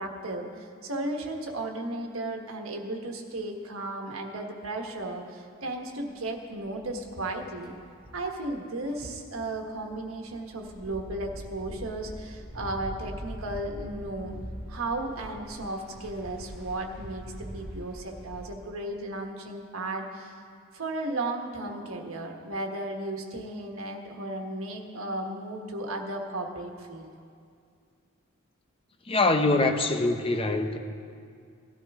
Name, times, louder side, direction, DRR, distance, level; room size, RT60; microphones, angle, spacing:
voice 1, 0.0-7.7 8.1-14.4 14.7-20.4 20.7-27.1, right 2 dB, 85° right, 3 dB, 1.4 m, -35 dB
sound 1, 1.4-1.5 4.7-4.9 6.1-18.5, equal, 5° right, 1.9 m, -43 dB
voice 2, 29.1-30.8, left 2 dB, 25° left, 6 dB, 0.7 m, -24 dB
18.0 x 12.5 x 3.6 m, 2.3 s
head